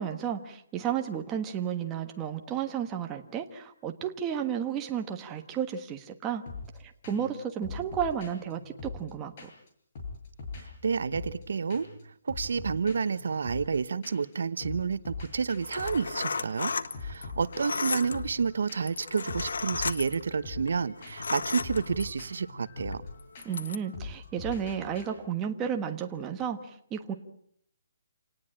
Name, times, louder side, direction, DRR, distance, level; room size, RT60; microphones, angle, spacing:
voice 1, 0.0-6.5 6.7-9.3 23.4-27.1, right 8 dB, 10° right, 4 dB, 1.4 m, -32 dB
sound 1, 6.5-6.8 7.0-7.4 7.6-9.7 9.9-11.4 11.7-12.0 12.3-14.3 14.6-25.0, left 4 dB, 30° left, 6.5 m, -42 dB
voice 2, 10.6-16.7 17.0-23.0, right 5 dB, 65° right, 14 dB, 1.0 m, -30 dB
sound 2, 15.5-22.3 22.9-23.8, left 4 dB, 85° left, 1.5 m, -35 dB
28.0 x 19.0 x 8.8 m, 0.66 s
hypercardioid pair, 175°, 0 cm